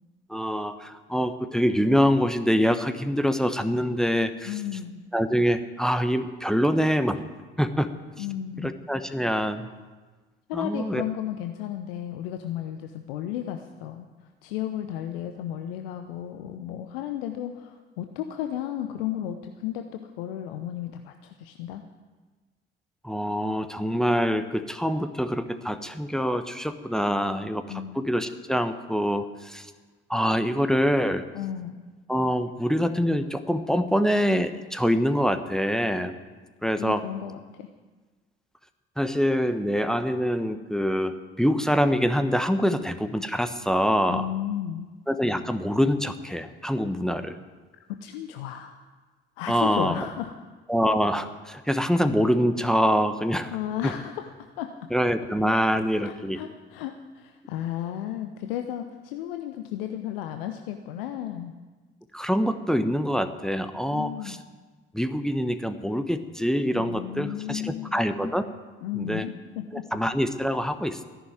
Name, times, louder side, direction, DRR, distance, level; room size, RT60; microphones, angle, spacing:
voice 1, 0.3-4.5 5.1-7.2 7.6-7.9 8.2-8.3 8.6-9.7 10.5-11.0 23.0-27.6 27.9-29.7 30.1-31.2 32.1-36.2 36.6-37.0 39.0-44.3 45.1-47.4 49.5-50.1 50.7-53.6 53.8-53.9 54.9-56.4 62.1-64.4 64.9-68.5 68.9-69.2 69.9-71.0, equal, ahead, 9 dB, 1.1 m, -25 dB
voice 2, 4.4-5.0 8.2-8.7 10.5-14.1 14.4-21.8 27.7-28.0 31.3-31.8 36.8-37.7 44.1-44.9 48.0-48.8 49.4-50.3 53.5-54.3 54.6-54.7 56.0-61.5 63.9-64.4 66.7-68.0 68.8-69.8, left 11 dB, 70° left, 7 dB, 0.8 m, -33 dB
14.0 x 11.5 x 9.0 m, 1.3 s
figure-of-eight pair, 50°, 30 cm